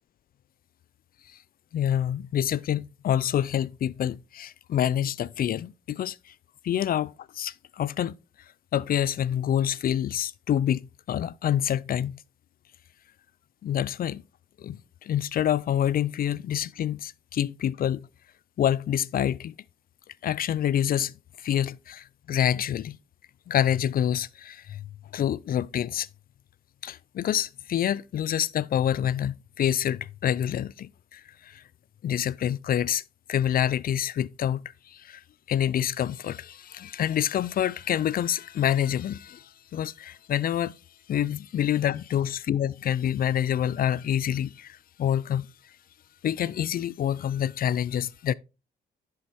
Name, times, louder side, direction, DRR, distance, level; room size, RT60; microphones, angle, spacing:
voice 1, 1.7-6.3 6.6-8.2 8.7-12.2 13.6-14.2 14.6-18.1 18.6-19.5 20.2-23.0 23.5-26.1 26.8-31.6 32.0-33.0 33.3-35.2 35.5-40.7 41.1-45.5 46.2-48.3, left 10 dB, 50° left, 0.4 m, -27 dB
10.5 x 6.8 x 3.0 m
cardioid pair, 90°, 20 cm